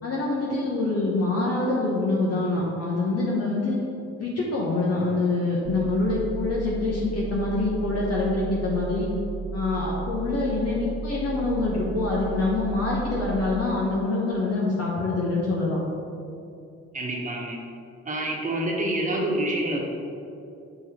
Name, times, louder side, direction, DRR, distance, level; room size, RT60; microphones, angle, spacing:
voice 1, 0.0-3.8 4.2-9.1 9.5-15.8, left 2 dB, 55° left, -5 dB, 1.3 m, -25 dB
sound 1, 5.6-13.6, right 5 dB, 70° right, 1.4 m, -34 dB
voice 2, 16.9-17.6 18.0-19.8, right 1 dB, 25° right, -1 dB, 1.4 m, -27 dB
6.7 x 4.5 x 4.4 m, 2.6 s
cardioid pair, 90°, 30 cm